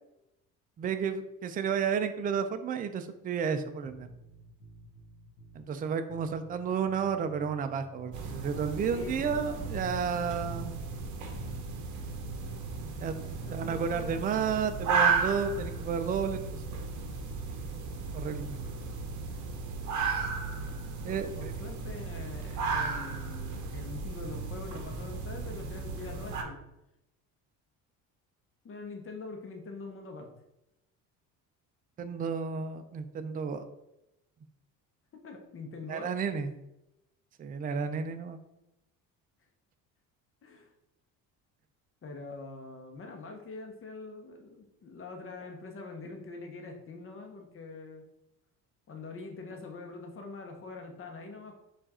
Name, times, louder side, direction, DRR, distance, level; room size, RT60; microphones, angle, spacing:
voice 1, 0.8-4.1 5.5-10.8 13.0-16.6 18.1-18.6 21.0-21.5 32.0-33.7 35.9-36.5 37.4-38.4, right 6 dB, 25° right, 9 dB, 0.3 m, -32 dB
sound 1, 3.8-5.6 6.1-8.7 9.1-11.7 12.1-14.6 15.1-15.7, equal, 90° left, 0.8 m, -51 dB
sound 2, 8.1-26.4, right 4 dB, 55° right, 0.8 m, -35 dB
voice 2, 8.8-10.0 13.4-14.7 21.1-26.6 28.6-30.3 35.2-36.1 40.4-40.7 42.0-48.0 48.9-51.6, left 3 dB, 35° left, 4 dB, 0.8 m, -44 dB
4.5 x 2.5 x 4.2 m, 0.89 s
cardioid pair, 105°, 37 cm